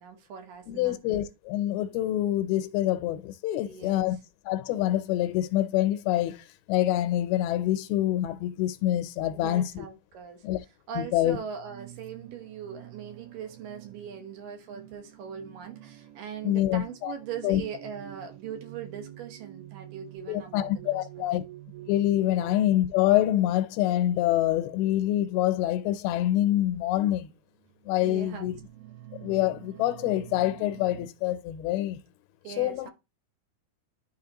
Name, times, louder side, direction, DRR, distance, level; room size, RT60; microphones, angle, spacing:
voice 1, 0.0-1.0 3.6-4.1 9.3-10.4 10.9-21.3 22.4-22.5 28.0-28.5 32.4-32.9, right 7 dB, 70° right, 2.6 m, -40 dB
voice 2, 0.7-4.2 4.5-9.9 10.4-10.6 11.0-11.4 16.4-17.1 17.4-17.6 20.3-21.4 21.9-27.3 27.9-28.6 29.2-32.0 32.6-32.9, left 13 dB, 85° left, 2.5 m, -26 dB
sound 1, 11.5-23.7 24.6-24.9 26.0-26.1 26.7-26.9 27.6-31.1, right 15 dB, 85° right, 2.6 m, -48 dB
11.5 x 4.0 x 2.9 m
omnidirectional pair, 4.4 m